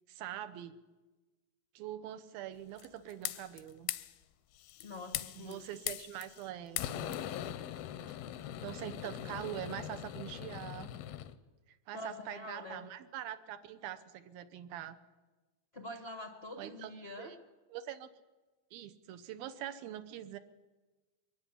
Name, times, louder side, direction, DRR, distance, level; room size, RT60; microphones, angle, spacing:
voice 1, 0.1-0.8 1.7-3.9 5.4-7.2 8.6-10.9 11.7-15.0 16.6-16.9 17.2-17.4 17.7-18.1 18.7-20.4, right 11 dB, 80° right, 11 dB, 2.8 m, -44 dB
sound 1, 2.8-3.6 3.9-4.1 4.6-6.5 6.8-11.3, left 12 dB, 90° left, 2.7 m, -41 dB
voice 2, 4.8-5.6 11.9-12.9 15.7-17.3, left 2 dB, 70° left, 5 dB, 0.5 m, -45 dB
23.0 x 13.5 x 9.9 m, 1.2 s
omnidirectional pair, 4.2 m